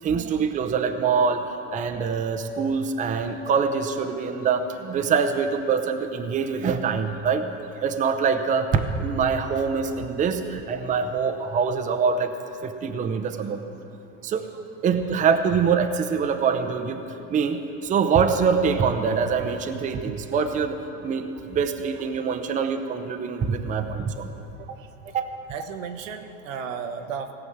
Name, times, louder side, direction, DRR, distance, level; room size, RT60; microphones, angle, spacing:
voice 1, 0.0-7.5 7.8-12.3 12.6-13.6 14.2-14.5 14.8-17.0 17.3-24.3 25.1-25.2, right 6 dB, 20° right, 7 dB, 0.6 m, -24 dB
voice 2, 25.5-27.3, right 6 dB, 90° right, 6 dB, 1.2 m, -34 dB
17.5 x 6.1 x 8.0 m, 2.9 s
supercardioid pair, 130°, 38 cm